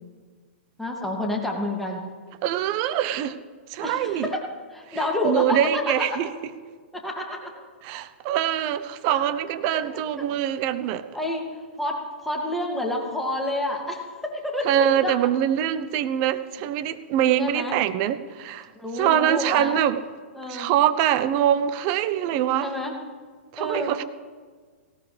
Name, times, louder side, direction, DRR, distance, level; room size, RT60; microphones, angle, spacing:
voice 1, 0.8-2.0 3.8-4.4 4.7-6.2 6.9-7.5 9.1-9.3 9.7-9.8 10.2-10.3 10.9-15.1 17.4-17.8 18.7-19.8 20.3-20.7 22.6-22.9 23.6-23.9, left 1 dB, ahead, -1 dB, 2.4 m, -29 dB
voice 2, 2.4-3.4 3.7-4.3 5.2-6.3 7.8-11.0 14.6-18.7 18.9-20.0 20.5-22.7 23.5-24.0, right 11 dB, 40° right, 12 dB, 0.9 m, -24 dB
18.5 x 17.5 x 3.4 m, 1.5 s
hypercardioid pair, 125°, 7 cm